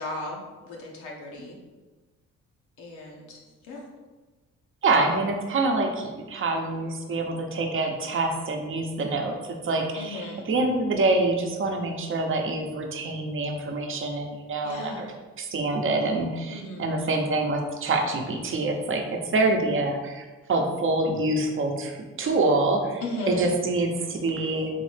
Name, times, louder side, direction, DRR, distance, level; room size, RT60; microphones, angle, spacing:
voice 1, 0.0-1.6 2.8-3.8 10.0-10.4 14.6-15.0 16.5-16.8 23.0-23.5, left 1 dB, 85° left, -2 dB, 0.9 m, -35 dB
voice 2, 4.8-9.3 9.6-15.1 15.4-24.7, right 2 dB, 45° right, 3 dB, 0.7 m, -26 dB
3.9 x 3.1 x 3.2 m, 1.2 s
cardioid pair, 90°, 30 cm